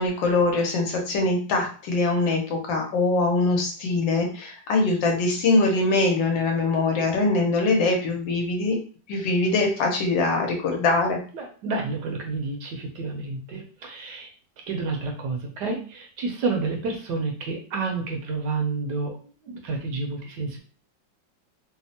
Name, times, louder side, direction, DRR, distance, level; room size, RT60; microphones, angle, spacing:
voice 1, 0.0-8.8 9.1-11.2, left 3 dB, 80° left, 1 dB, 1.4 m, -23 dB
voice 2, 11.3-14.3 14.7-20.6, right 3 dB, 70° right, 2 dB, 1.1 m, -30 dB
3.4 x 2.0 x 2.7 m, 0.40 s
omnidirectional pair, 2.0 m